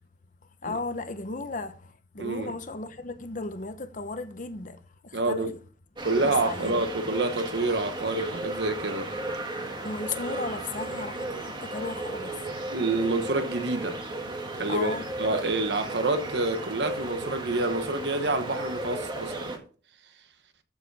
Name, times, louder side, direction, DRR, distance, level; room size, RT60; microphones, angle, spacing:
voice 1, 0.6-5.5 6.2-6.8 9.8-12.5 14.7-15.1, left 3 dB, 45° left, 0.9 m, -35 dB
voice 2, 2.2-2.5 5.1-5.5 6.0-9.1 12.7-14.0 14.6-19.6, right 2 dB, 70° right, 1.2 m, -28 dB
sound 1, 6.0-19.6, right 2 dB, 25° right, 1.7 m, -35 dB
13.5 x 5.0 x 4.8 m
head